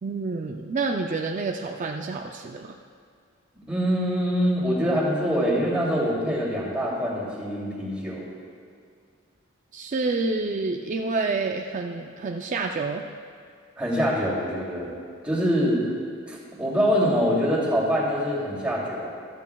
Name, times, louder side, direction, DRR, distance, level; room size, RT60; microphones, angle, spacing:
voice 1, 0.0-2.7 9.7-13.0, right 3 dB, 40° right, 2 dB, 0.4 m, -28 dB
voice 2, 3.7-8.2 13.8-14.9 15.2-15.8 16.3-19.1, equal, 5° right, -6 dB, 2.7 m, -24 dB
13.5 x 13.0 x 2.3 m, 2.2 s
head